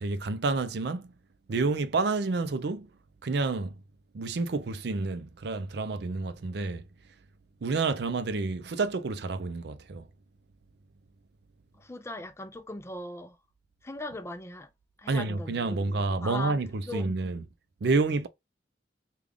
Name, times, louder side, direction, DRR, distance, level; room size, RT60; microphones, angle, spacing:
voice 1, 0.0-1.1 1.5-2.9 3.2-3.8 4.1-6.9 7.6-10.1 15.1-17.4 17.8-18.3, right 3 dB, 65° right, 0.5 m, -29 dB
voice 2, 11.7-13.4 13.8-14.7 15.0-16.5 16.9-17.1, left 2 dB, 15° left, 0.5 m, -39 dB
3.6 x 2.3 x 3.4 m
head